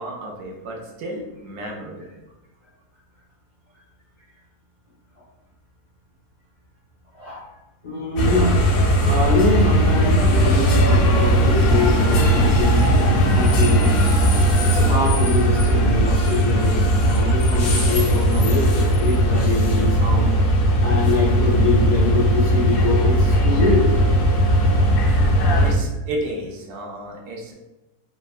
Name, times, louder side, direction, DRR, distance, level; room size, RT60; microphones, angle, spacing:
voice 1, 0.0-2.0 25.1-27.5, right 1 dB, 75° right, 0 dB, 1.1 m, -33 dB
voice 2, 7.8-8.5 9.0-12.8 13.3-13.9 14.7-20.3 20.8-23.8, left 2 dB, 40° left, -8 dB, 0.4 m, -24 dB
sound 1, 8.2-25.7, equal, 85° left, 1.1 m, -18 dB
3.4 x 2.1 x 2.3 m, 1.0 s
omnidirectional pair, 1.7 m